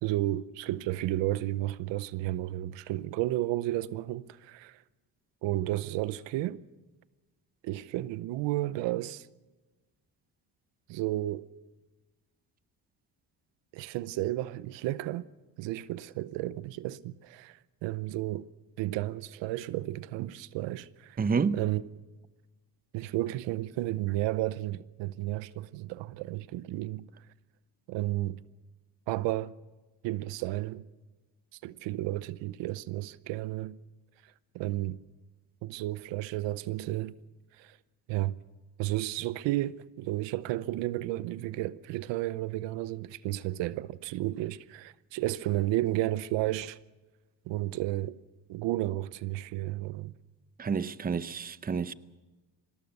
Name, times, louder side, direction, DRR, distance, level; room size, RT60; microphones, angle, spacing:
voice 1, 0.0-4.8 5.4-6.6 7.6-9.3 10.9-11.5 13.7-15.3 15.6-18.5 18.8-21.2 21.5-21.8 22.9-27.1 27.9-28.4 29.1-29.6 30.0-30.9 31.6-33.8 34.5-35.0 35.6-37.2 37.6-37.8 38.1-38.4 38.8-46.8 47.5-48.2 48.5-50.1, right 16 dB, 85° right, 0.8 m, -32 dB
voice 2, 21.2-21.6 50.6-51.9, right 5 dB, 20° right, 0.7 m, -29 dB
25.0 x 19.0 x 6.6 m
cardioid pair, 105°, 43 cm